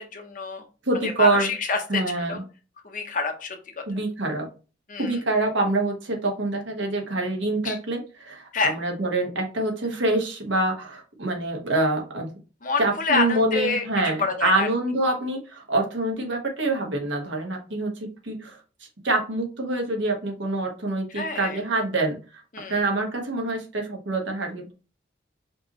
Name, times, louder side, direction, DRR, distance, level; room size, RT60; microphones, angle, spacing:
voice 1, 0.1-0.6 1.0-2.4 2.8-3.8 4.9-5.2 7.6-7.8 8.5-8.7 12.6-14.7 21.1-21.6 22.5-22.8, left 4 dB, 45° left, 5 dB, 0.8 m, -27 dB
voice 2, 0.9-1.5 1.9-2.4 3.9-4.5 5.0-12.3 12.8-18.6 19.0-22.2 22.7-24.7, right 2 dB, 80° right, 2 dB, 1.3 m, -26 dB
5.1 x 3.1 x 3.0 m, 0.34 s
head